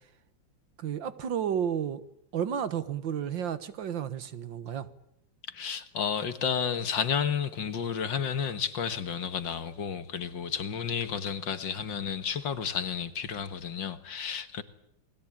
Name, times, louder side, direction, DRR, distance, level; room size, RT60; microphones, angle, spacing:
voice 1, 0.8-2.0 2.3-4.9, right 8 dB, 70° right, 2.0 m, -32 dB
voice 2, 5.5-14.6, left 7 dB, 70° left, 2.1 m, -31 dB
29.0 x 21.0 x 8.8 m
omnidirectional pair, 2.2 m